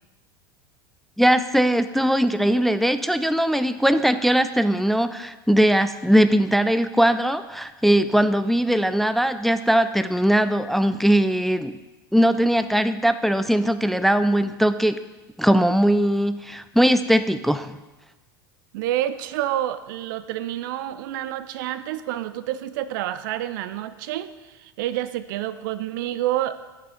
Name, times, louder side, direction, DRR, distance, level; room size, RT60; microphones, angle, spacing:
voice 1, 1.2-11.7 12.1-15.0 15.4-17.8, equal, ahead, 11 dB, 0.3 m, -20 dB
voice 2, 18.7-26.6, right 13 dB, 60° right, 13 dB, 0.4 m, -28 dB
6.6 x 6.0 x 5.0 m, 1.1 s
figure-of-eight pair, 80°, 12 cm